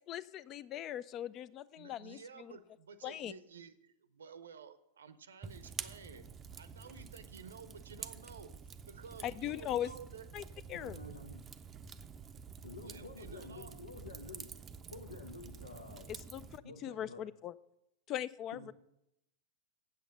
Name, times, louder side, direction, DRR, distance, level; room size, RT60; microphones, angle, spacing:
voice 1, 0.1-2.5 3.0-3.3 9.2-9.9 10.3-10.4 10.7-11.0 16.1-17.5 18.1-18.7, left 11 dB, 35° left, 20 dB, 0.4 m, -40 dB
voice 2, 1.8-6.3 6.6-8.5 8.8-10.2 11.0-11.2 12.8-13.8, right 5 dB, 70° right, 13 dB, 0.6 m, -52 dB
Fire, 5.4-16.6, right 6 dB, 20° right, 0.5 m, -49 dB
voice 3, 10.7-11.4 12.6-14.5 14.9-16.2 16.6-17.3 18.5-18.7, left 3 dB, 80° left, 2 dB, 0.9 m, -49 dB
8.3 x 7.8 x 7.0 m, 0.83 s
figure-of-eight pair, 90°, 0 cm